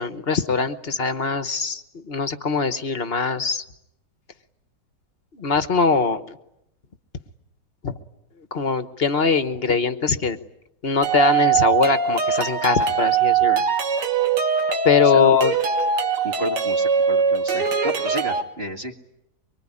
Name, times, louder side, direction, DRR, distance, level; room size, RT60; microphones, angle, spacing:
voice 1, 0.0-3.6 5.3-6.4 7.8-8.0 8.5-10.4 10.8-13.6 14.8-15.5, left 4 dB, 40° left, 11 dB, 1.2 m, -22 dB
sound 1, 11.0-18.4, right 5 dB, 80° right, 2.4 m, -21 dB
voice 2, 16.2-18.9, right 2 dB, 35° right, 2 dB, 2.1 m, -31 dB
24.0 x 24.0 x 9.9 m, 0.80 s
omnidirectional pair, 1.8 m